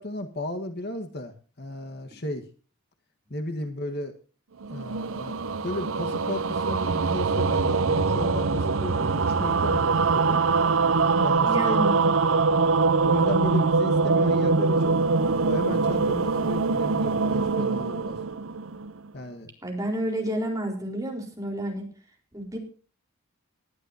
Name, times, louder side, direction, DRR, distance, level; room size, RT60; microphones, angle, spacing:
voice 1, 0.0-2.5 3.3-4.2 4.7-5.3 5.6-10.4 11.2-11.9 13.1-15.0 15.3-18.2 19.1-19.5, left 1 dB, 45° left, 6 dB, 1.6 m, -34 dB
sound 1, 4.6-19.1, right 4 dB, 65° right, 0.7 m, -23 dB
voice 2, 11.5-12.1 19.6-21.9 22.3-22.6, right 1 dB, 15° right, 1 dB, 4.2 m, -30 dB
20.0 x 11.5 x 2.9 m, 0.38 s
head